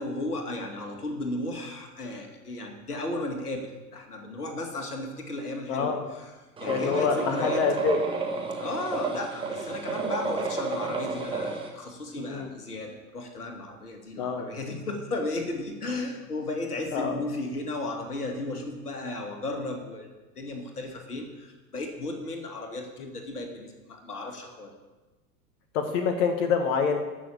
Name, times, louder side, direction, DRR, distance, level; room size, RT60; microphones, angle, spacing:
voice 1, 0.0-7.7 8.6-20.1 20.4-24.7, left 2 dB, 75° left, 3 dB, 2.3 m, -35 dB
voice 2, 5.7-6.0 6.7-8.0 12.1-12.5 14.2-14.5 16.9-17.2 25.7-27.0, left 6 dB, 40° left, 5 dB, 1.3 m, -26 dB
sound 1, 6.6-11.7, right 4 dB, 10° right, 1.8 m, -31 dB
12.5 x 6.5 x 7.5 m, 1.2 s
figure-of-eight pair, 95°, 46 cm